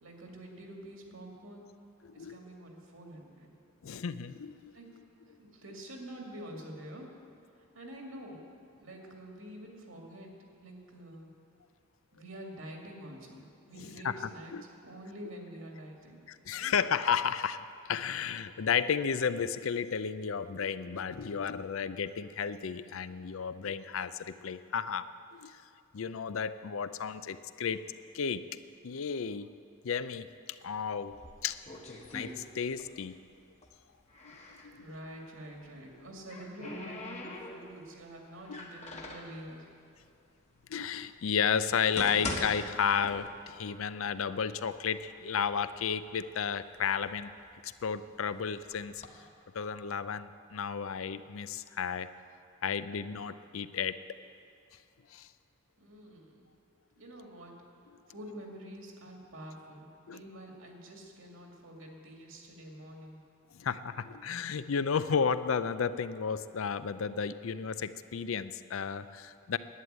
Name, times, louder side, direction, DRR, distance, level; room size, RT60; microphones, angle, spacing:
voice 1, 0.0-1.7 2.1-3.5 4.7-4.9 5.4-7.1 7.7-8.4 8.8-10.3 10.6-11.3 12.1-14.6 14.8-16.2 16.5-16.7 34.8-39.6 55.8-56.5 57.0-57.6 58.1-63.2, right 1 dB, 75° right, 1 dB, 2.3 m, -47 dB
voice 2, 2.0-2.4 3.8-4.7 13.8-14.6 16.3-25.5 25.9-27.8 28.1-28.4 28.8-29.5 29.8-30.3 30.6-31.6 32.1-33.1 34.6-34.9 38.5-38.6 40.7-47.3 47.6-49.0 49.5-52.1 52.6-54.0 55.1-55.3 60.1-60.2 63.5-69.6, left 6 dB, 75° left, 14 dB, 0.5 m, -33 dB
sound 1, 31.1-33.0 33.3-34.7 35.8-37.9 38.4-39.4 40.1-40.2 40.9-41.0 41.6-43.6 43.9-44.0 44.7-44.8 45.2-45.9 46.4-48.1 48.7-49.1, left 2 dB, 30° left, 1.3 m, -42 dB
11.0 x 9.5 x 8.9 m, 2.4 s
head